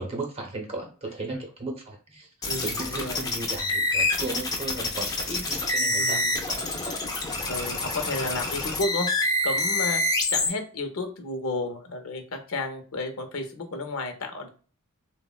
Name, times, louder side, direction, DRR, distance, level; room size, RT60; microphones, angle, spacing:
voice 1, 0.0-7.0, right 2 dB, 25° right, 2 dB, 0.6 m, -36 dB
sound 1, 2.4-10.5, left 2 dB, 15° left, 0.4 m, -27 dB
voice 2, 2.5-3.3 5.9-6.4 7.5-9.1 9.4-10.0 10.3-14.5, left 2 dB, 65° left, 6 dB, 0.6 m, -32 dB
3.5 x 2.0 x 2.3 m, 0.39 s
head